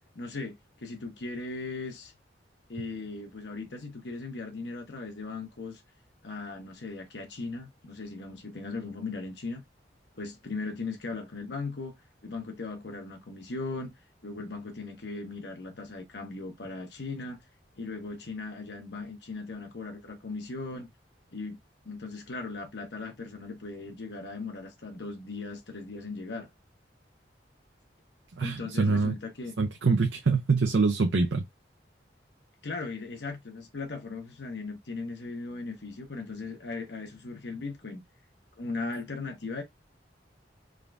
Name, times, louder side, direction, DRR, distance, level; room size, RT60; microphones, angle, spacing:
voice 1, 0.1-2.1 2.7-5.8 6.2-9.6 10.1-11.9 12.2-13.9 14.2-17.4 17.8-20.9 21.3-21.6 21.8-26.5 28.4-29.5 32.6-38.0 38.6-39.6, left 3 dB, 70° left, 1.0 m, -38 dB
voice 2, 28.4-29.1 29.6-31.4, right 4 dB, 80° right, 0.6 m, -25 dB
3.7 x 2.5 x 3.3 m
head